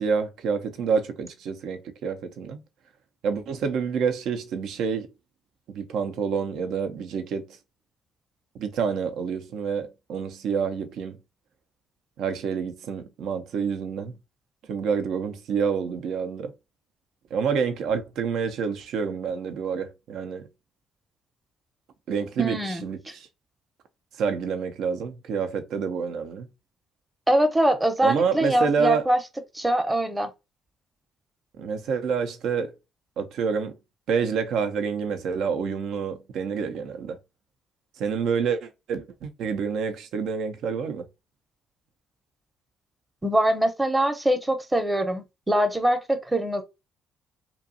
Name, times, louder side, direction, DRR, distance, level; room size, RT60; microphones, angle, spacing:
voice 1, 0.0-2.6 3.2-5.1 5.7-7.6 8.5-11.2 12.2-14.1 14.7-16.5 17.3-20.5 22.1-23.3 24.2-26.5 28.0-29.1 31.6-32.7 33.2-33.8 34.1-37.2 38.0-41.1, right 6 dB, 70° right, 0.4 m, -28 dB
voice 2, 22.4-22.8 27.3-29.2 29.5-30.3 43.2-46.6, right 1 dB, 15° right, 0.7 m, -23 dB
2.6 x 2.3 x 2.6 m
hypercardioid pair, 55°, 0 cm